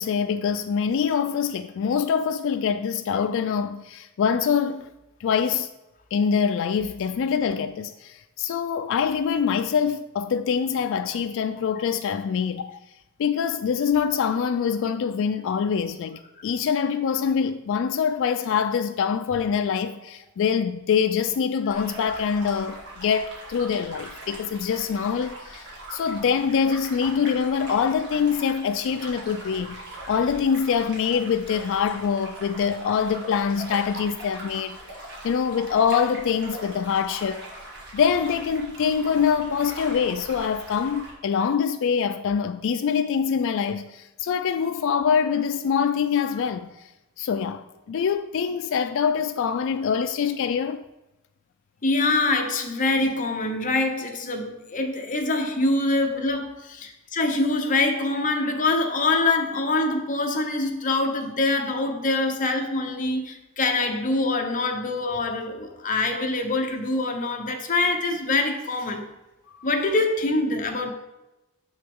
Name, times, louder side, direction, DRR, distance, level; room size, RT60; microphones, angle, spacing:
voice 1, 0.0-4.9 5.2-5.7 6.1-12.8 13.2-29.8 30.1-34.8 35.2-37.5 37.9-46.7 47.2-50.8 69.5-69.7, left 6 dB, 65° left, 0.3 m, -24 dB
sound 1, 21.7-41.1, right 1 dB, 55° right, 2.1 m, -41 dB
voice 2, 51.8-69.1 69.6-70.9, left 2 dB, 40° left, 0.9 m, -24 dB
6.8 x 6.3 x 3.6 m
head